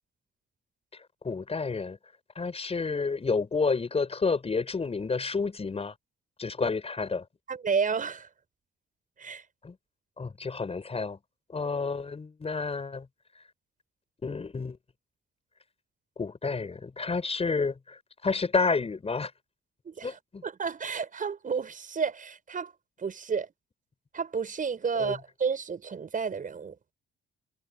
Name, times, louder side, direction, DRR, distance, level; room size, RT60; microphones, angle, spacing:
voice 1, 1.2-2.0 2.4-5.9 6.4-7.3 9.6-9.8 10.2-11.2 11.5-13.1 13.4-13.5 14.2-14.8 16.2-19.3 20.0-20.4 24.9-25.2, left 4 dB, 30° left, 5.3 m, -30 dB
voice 2, 7.5-8.3 9.2-9.4 19.8-22.7 23.0-23.5 24.1-26.7, right 5 dB, 40° right, 6.8 m, -31 dB
cardioid pair, 90°, 20 cm